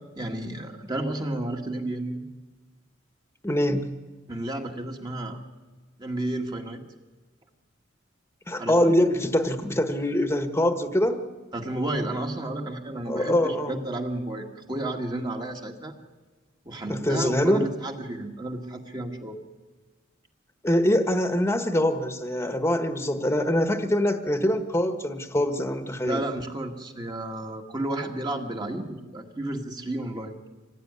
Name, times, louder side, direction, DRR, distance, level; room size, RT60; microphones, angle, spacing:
voice 1, 0.2-2.3 4.3-5.4 6.0-6.8 8.6-8.9 11.5-15.9 16.7-19.4 26.0-30.4, right 1 dB, 20° right, 3 dB, 1.9 m, -32 dB
voice 2, 3.4-3.9 8.5-11.2 13.1-13.8 16.9-17.7 20.6-26.2, left 1 dB, 15° left, 7 dB, 1.4 m, -24 dB
25.5 x 18.5 x 9.7 m, 1.3 s
head